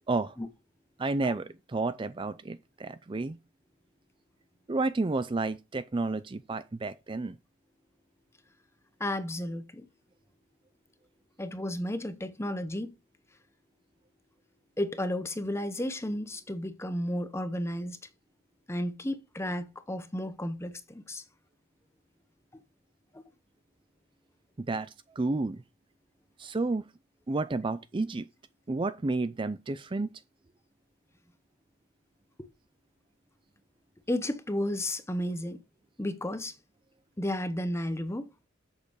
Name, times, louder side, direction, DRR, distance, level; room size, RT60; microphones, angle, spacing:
voice 1, 1.0-3.4 4.7-7.4 24.6-24.9 25.2-25.6 26.4-26.8 27.3-28.2 28.7-30.1, right 3 dB, 25° right, 0.4 m, -31 dB
voice 2, 9.0-9.9 11.4-12.9 14.8-18.0 18.7-21.2 22.5-22.6 23.1-23.2 32.4-32.5 34.1-35.6 36.0-36.5 37.2-38.3, left 1 dB, 15° left, 0.8 m, -33 dB
8.1 x 6.6 x 4.9 m
head